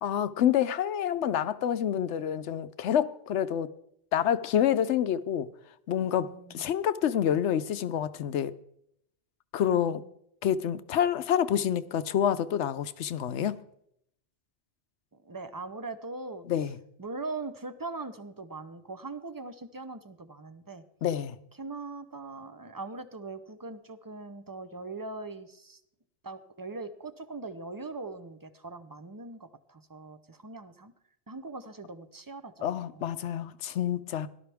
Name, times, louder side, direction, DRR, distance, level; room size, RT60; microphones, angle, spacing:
voice 1, 0.0-3.7 4.1-5.5 5.9-8.5 9.5-10.0 10.4-13.6 16.5-16.8 21.0-21.4 32.6-34.3, left 9 dB, 90° left, 1.0 m, -27 dB
voice 2, 6.2-6.7 9.6-10.1 15.1-16.4 17.0-20.8 21.6-25.8 26.2-30.9 31.3-33.1, right 3 dB, 20° right, 0.7 m, -41 dB
17.5 x 11.5 x 3.5 m
omnidirectional pair, 1.1 m